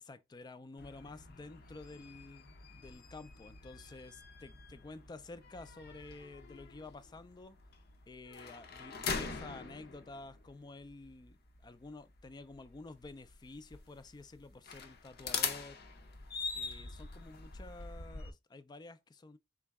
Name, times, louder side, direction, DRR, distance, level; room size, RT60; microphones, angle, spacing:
voice 1, 0.0-7.6 8.1-15.8 16.5-19.4, left 3 dB, 20° left, 0.3 m, -51 dB
sound 1, 0.8-18.3, left 5 dB, 55° left, 0.6 m, -44 dB
3.6 x 3.0 x 3.4 m
head